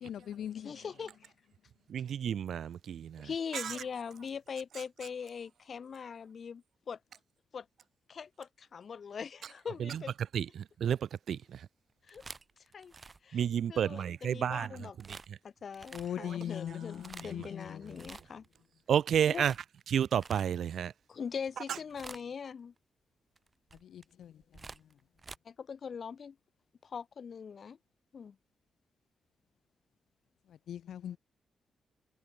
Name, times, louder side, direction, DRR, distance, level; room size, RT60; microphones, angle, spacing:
voice 1, 0.0-0.7 15.9-17.8 23.9-24.3 30.7-31.2, left 10 dB, 90° left, 0.8 m, -40 dB
voice 2, 0.5-1.3 3.2-7.0 7.5-7.7 8.1-10.1 12.0-12.2 12.7-12.9 13.2-15.0 15.4-18.4 19.3-19.4 21.1-22.7 25.4-26.4 26.8-27.8 28.1-28.4, left 6 dB, 45° left, 0.9 m, -42 dB
voice 3, 1.9-3.3 10.3-10.4 10.8-11.0 11.3-11.4 13.3-14.7 16.2-16.3 18.9-19.5 19.9-20.9, right 9 dB, 65° right, 0.6 m, -30 dB
sound 1, 11.9-14.0 15.0-15.3 15.7-16.3 16.8-17.5 17.9-18.6 18.9-20.9 21.4-21.6 21.9-22.5 23.4-25.4, right 4 dB, 25° right, 1.8 m, -50 dB
wide cardioid pair, 165°, 0 cm